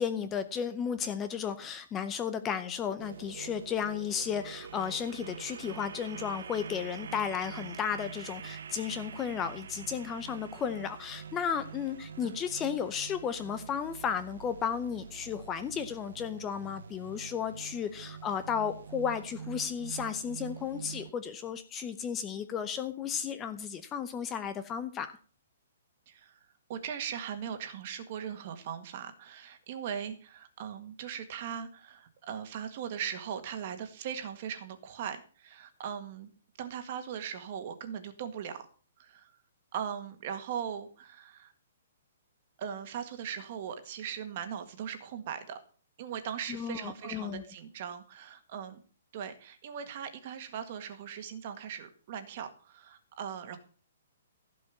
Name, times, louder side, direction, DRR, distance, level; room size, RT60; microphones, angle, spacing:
voice 1, 0.0-25.1 46.5-47.4, left 7 dB, 15° left, 10 dB, 0.6 m, -34 dB
sound 1, 3.0-21.1, right 7 dB, 70° right, 0.8 m, -45 dB
voice 2, 26.1-26.4 26.7-36.3 36.6-38.7 39.0-39.3 39.7-41.5 42.6-45.6 46.0-48.8 49.1-53.6, right 8 dB, 35° right, 8 dB, 1.7 m, -39 dB
15.5 x 5.3 x 7.2 m, 0.41 s
hypercardioid pair, 170°, 0 cm